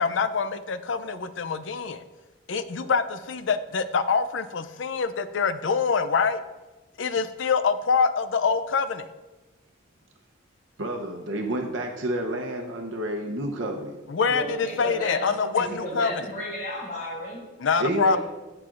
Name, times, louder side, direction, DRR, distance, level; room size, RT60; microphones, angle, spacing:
voice 1, 0.0-2.0 2.5-6.4 7.0-9.1 14.1-16.3 17.6-18.2, left 5 dB, 80° left, 12 dB, 0.5 m, -25 dB
voice 2, 10.8-14.0 17.8-18.2, right 1 dB, 85° right, 2 dB, 0.8 m, -29 dB
voice 3, 14.3-17.4 18.0-18.2, left 1 dB, 50° left, -10 dB, 3.0 m, -34 dB
14.5 x 5.8 x 2.5 m, 1.2 s
head